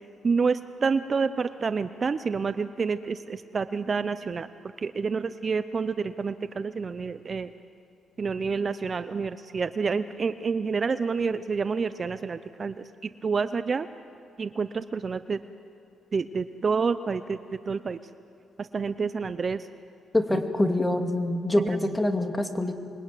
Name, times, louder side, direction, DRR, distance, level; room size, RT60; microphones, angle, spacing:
voice 1, 0.2-4.5 4.8-7.5 8.2-13.9 14.4-15.4 16.1-17.4 17.7-18.0 18.6-19.7 20.3-20.4 21.6-21.8, right 5 dB, 40° right, 12 dB, 0.7 m, -28 dB
voice 2, 20.1-22.7, left 1 dB, 10° left, 5 dB, 2.4 m, -25 dB
27.0 x 22.5 x 9.2 m, 2.6 s
cardioid pair, 90°, 0 cm